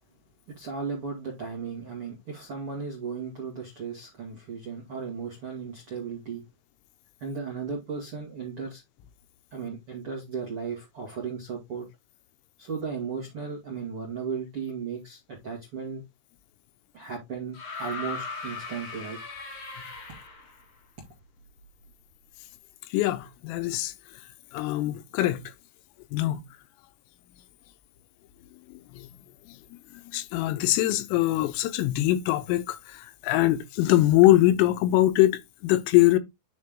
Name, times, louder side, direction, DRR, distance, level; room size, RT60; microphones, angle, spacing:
voice 1, 0.5-6.4 7.2-8.8 9.5-11.9 12.6-16.0 16.9-19.2, right 5 dB, 75° right, 1.3 m, -35 dB
sound 1, 17.5-20.6 21.8-21.9, left 4 dB, 70° left, 1.3 m, -38 dB
voice 2, 22.9-23.9 24.5-25.4 26.1-26.4 28.9-29.1 30.1-36.2, left 15 dB, 85° left, 3.4 m, -22 dB
9.4 x 4.2 x 3.7 m
omnidirectional pair, 5.9 m